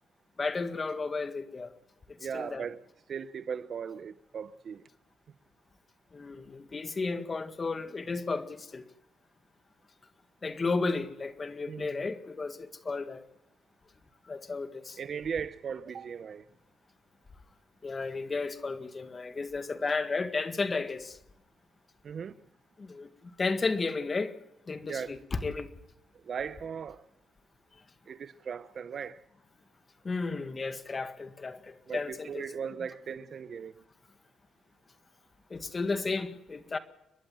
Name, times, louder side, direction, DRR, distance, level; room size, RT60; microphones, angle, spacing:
voice 1, 0.4-1.7 2.3-2.7 6.1-8.8 10.4-13.2 14.3-15.0 17.8-21.2 22.8-24.3 24.7-25.7 30.0-32.4 35.5-36.8, left 3 dB, 30° left, 1.8 m, -33 dB
voice 2, 2.2-2.8 3.1-4.9 11.7-12.1 15.0-16.4 22.0-22.4 24.9-25.2 26.2-27.0 28.1-29.2 31.9-33.8, right 7 dB, 50° right, 0.7 m, -38 dB
30.0 x 11.5 x 7.7 m
cardioid pair, 90°, 0 cm